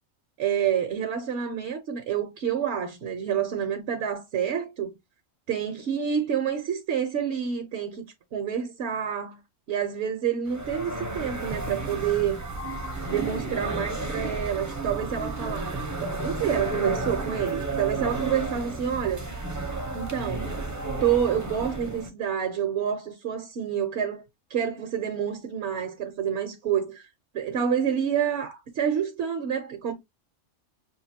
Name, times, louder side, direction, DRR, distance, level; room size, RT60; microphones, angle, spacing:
voice 1, 0.4-4.9 5.5-8.1 8.3-9.4 9.7-12.4 13.0-15.7 16.0-19.3 19.9-20.6 21.0-24.2 24.5-26.9 27.3-29.9, right 8 dB, 60° right, 0.9 m, -28 dB
sound 1, 10.5-22.1, right 2 dB, 20° right, 0.6 m, -32 dB
5.7 x 2.6 x 2.7 m
omnidirectional pair, 1.3 m